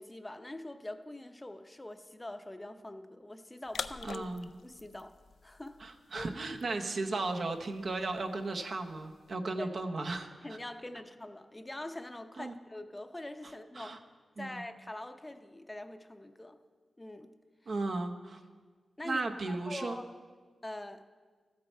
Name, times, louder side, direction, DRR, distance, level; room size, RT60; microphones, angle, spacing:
voice 1, 0.0-4.3 4.6-5.1 5.4-5.8 6.1-6.3 9.6-9.7 10.4-14.0 14.4-16.6 17.0-17.3 17.6-17.7 19.0-20.0 20.6-21.0, left 1 dB, 20° left, 8 dB, 0.6 m, -44 dB
sound 1, 3.6-9.3, left 5 dB, 75° left, 0.3 m, -47 dB
voice 2, 4.0-4.5 5.8-10.3 12.4-12.5 13.8-14.0 14.4-14.6 17.7-18.4 19.0-20.0, right 3 dB, 65° right, 4 dB, 0.8 m, -35 dB
13.0 x 8.6 x 4.5 m, 1.5 s
cardioid pair, 65°, 0 cm